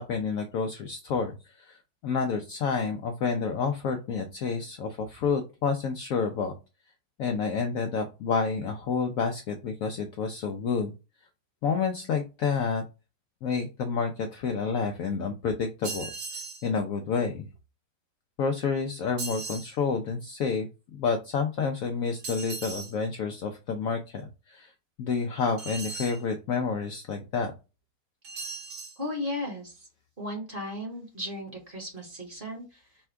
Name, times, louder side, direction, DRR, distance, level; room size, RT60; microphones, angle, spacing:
voice 1, 0.0-1.3 1.6-1.8 2.0-6.5 7.2-10.9 11.6-12.8 13.4-16.1 16.6-17.5 18.4-24.2 24.5-24.7 25.0-27.5, left 5 dB, 70° left, 5 dB, 0.8 m, -29 dB
sound 1, 15.8-16.7 19.2-19.7 22.2-22.9 25.6-26.2 28.2-29.0, right 4 dB, 60° right, 1.4 m, -37 dB
voice 2, 29.0-29.9 30.2-32.8, left 1 dB, 35° right, 0 dB, 1.2 m, -35 dB
4.2 x 2.3 x 4.4 m, 0.29 s
omnidirectional pair, 1.9 m